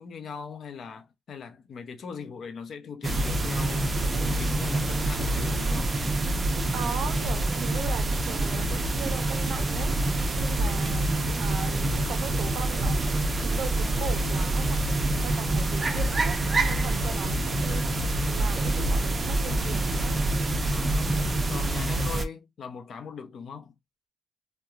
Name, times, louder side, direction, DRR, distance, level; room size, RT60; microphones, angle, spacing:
voice 1, 0.0-6.0 20.7-23.7, left 6 dB, 55° left, 0.6 m, -40 dB
sound 1, 3.0-22.3, right 2 dB, 30° right, 0.5 m, -26 dB
voice 2, 6.7-20.2, right 7 dB, 75° right, 0.5 m, -39 dB
2.8 x 2.1 x 2.4 m
cardioid pair, 90°, 0 cm